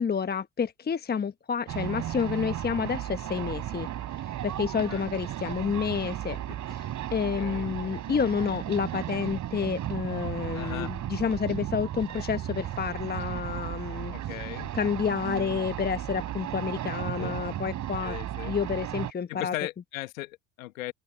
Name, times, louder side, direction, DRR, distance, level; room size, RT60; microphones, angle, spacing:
voice 1, 0.0-3.9 4.4-6.4 6.7-14.1 14.5-18.2 18.4-19.5, left 6 dB, 25° left, 1.2 m, -29 dB
sound 1, 1.7-19.1, right 12 dB, 45° right, 3.6 m, -35 dB
voice 2, 4.7-5.1 7.2-8.0 10.5-10.9 14.1-14.7 15.4-15.5 17.2-17.4 18.0-18.5 19.3-20.9, left 17 dB, 70° left, 1.7 m, -38 dB
open air
figure-of-eight pair, 60°, 42 cm